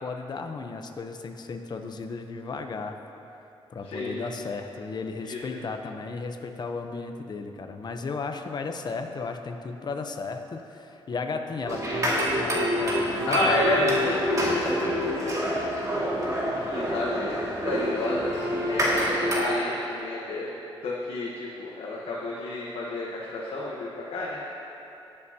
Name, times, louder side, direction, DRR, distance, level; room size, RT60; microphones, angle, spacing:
voice 1, 0.0-3.0 3.7-13.4 13.7-14.0, left 4 dB, 45° left, 5 dB, 0.8 m, -35 dB
voice 2, 3.8-4.2 5.2-5.6 13.3-15.5 15.9-18.4 18.6-20.5 20.8-24.4, left 2 dB, 75° left, -4 dB, 1.1 m, -30 dB
sound 1, 11.6-19.4, equal, 35° right, 2.2 m, -27 dB
19.5 x 6.9 x 2.9 m, 2.9 s
cardioid pair, 105°, 10 cm